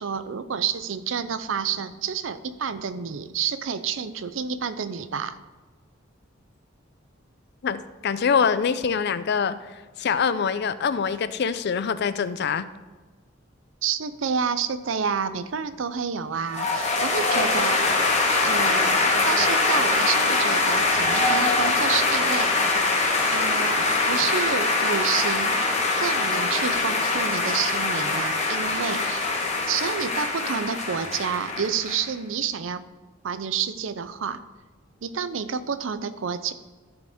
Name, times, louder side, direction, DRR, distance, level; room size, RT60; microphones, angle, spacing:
voice 1, 0.0-5.4 13.8-18.0 18.4-22.8 23.3-25.6 26.0-29.4 29.7-32.9 33.2-34.4 35.0-36.5, right 7 dB, 70° right, 12 dB, 0.5 m, -29 dB
voice 2, 7.6-12.7, left 6 dB, 55° left, 13 dB, 0.5 m, -25 dB
sound 1, 16.5-32.0, left 3 dB, 35° left, 1.4 m, -23 dB
14.0 x 5.0 x 3.6 m, 1.3 s
head